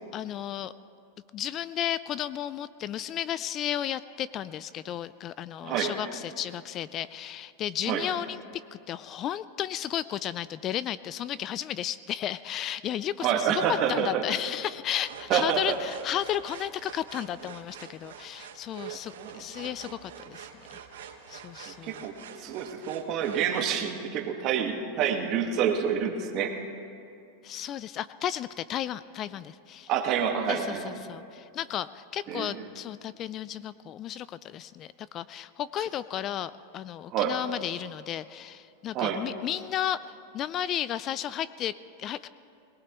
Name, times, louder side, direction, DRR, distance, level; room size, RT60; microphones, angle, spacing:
voice 1, 0.1-0.7 1.3-20.8 21.3-22.1 27.4-29.9 30.5-42.3, left 11 dB, 35° left, 17 dB, 0.3 m, -33 dB
voice 2, 13.2-14.2 15.3-15.8 18.9-19.4 21.7-26.5 29.9-30.9 32.3-32.7 37.1-37.3 38.9-39.2, right 8 dB, 40° right, 3 dB, 1.5 m, -28 dB
sound 1, 15.0-23.8, right 8 dB, 90° right, 1.2 m, -45 dB
22.0 x 19.0 x 3.0 m, 2.6 s
supercardioid pair, 135°, 0 cm